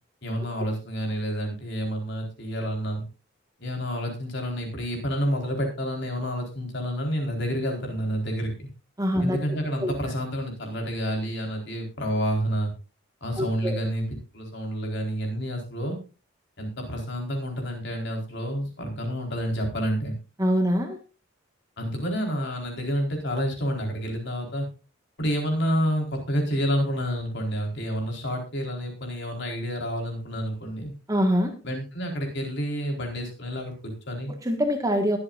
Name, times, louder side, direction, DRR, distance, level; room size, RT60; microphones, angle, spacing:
voice 1, 0.2-3.0 3.6-8.7 9.2-12.7 13.2-14.0 14.3-16.0 16.6-20.1 21.8-24.7 25.2-30.9 31.6-34.3, equal, 60° left, 2 dB, 4.3 m, -29 dB
voice 2, 9.0-9.4 9.8-9.9 13.4-13.7 20.4-21.0 31.1-31.5 34.3-35.2, equal, 15° right, 5 dB, 1.6 m, -24 dB
22.5 x 7.9 x 2.6 m, 0.31 s
head